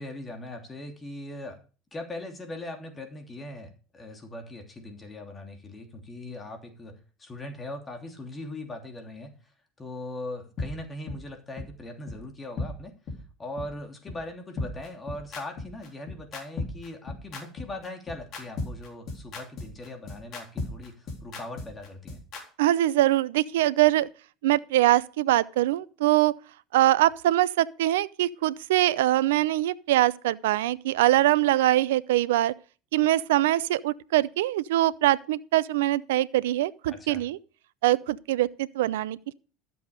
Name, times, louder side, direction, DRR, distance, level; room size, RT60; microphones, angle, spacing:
voice 1, 0.0-1.6 1.9-9.3 9.8-12.9 13.4-22.2 36.9-37.2, left 1 dB, 25° left, 3.0 m, -40 dB
sound 1, 10.6-10.7 11.1-11.2 11.6-11.7 12.1-12.2 12.6-12.7 13.1-13.2 13.6-13.7 14.1-14.2 14.6-22.4, left 3 dB, 50° left, 3.7 m, -35 dB
voice 2, 22.6-24.1 24.4-26.3 26.7-32.5 32.9-37.4 37.8-39.3, right 15 dB, 75° right, 0.6 m, -23 dB
13.0 x 7.8 x 5.1 m
hypercardioid pair, 80°, 0 cm